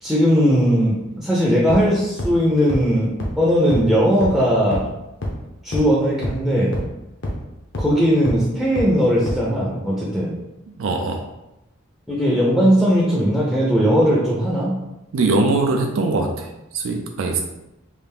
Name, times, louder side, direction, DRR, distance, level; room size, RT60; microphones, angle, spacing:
voice 1, 0.0-4.9 5.6-6.7 7.8-10.4 12.1-14.8, equal, ahead, -6 dB, 0.5 m, -18 dB
sound 1, 1.7-1.8 2.2-2.3 2.7-2.8 3.2-3.3 3.7-3.8 4.2-4.3 4.7-4.8 5.2-5.3 5.7-5.8 6.2-6.3 6.7-6.8 7.2-7.3 7.7-7.8 8.3-8.4 8.8-8.9 9.3-9.4, left 1 dB, 55° left, 0.7 m, -25 dB
voice 2, 10.8-11.2 15.1-16.5 16.7-17.4, right 3 dB, 70° right, 2 dB, 0.4 m, -21 dB
3.2 x 2.5 x 3.4 m, 0.94 s
head